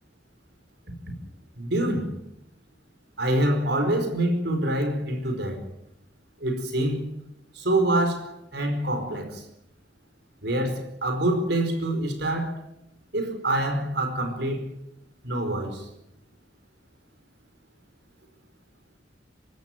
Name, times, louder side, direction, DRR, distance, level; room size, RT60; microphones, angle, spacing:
voice 1, 1.6-2.1 3.2-5.6 6.4-7.0 7.5-9.4 10.4-12.6 13.1-14.7 15.2-15.9, right 1 dB, 65° right, 4.8 m, -26 dB
26.0 x 13.5 x 9.2 m
head